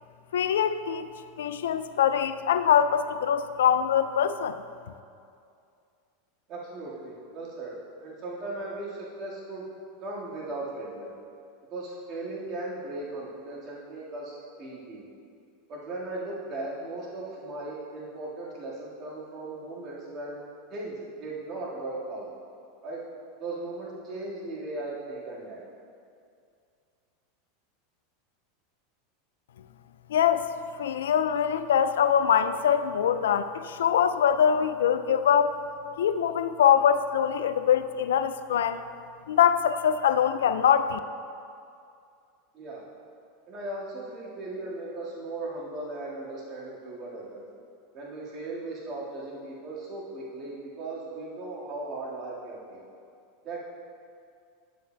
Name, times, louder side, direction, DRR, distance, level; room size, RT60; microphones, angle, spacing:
voice 1, 0.3-1.1 1.4-4.6 30.1-30.5 30.8-35.5 36.0-38.8 39.3-41.0, left 8 dB, 80° left, 11 dB, 0.3 m, -23 dB
voice 2, 6.5-7.7 8.0-9.6 10.0-11.1 11.7-15.0 15.7-20.4 20.7-22.3 22.8-23.0 23.4-25.6 42.5-42.8 43.5-47.4 47.9-52.8 53.4-53.6, right 2 dB, 45° right, -6 dB, 1.7 m, -37 dB
11.0 x 7.6 x 2.2 m, 2.4 s
hypercardioid pair, 95°, 0 cm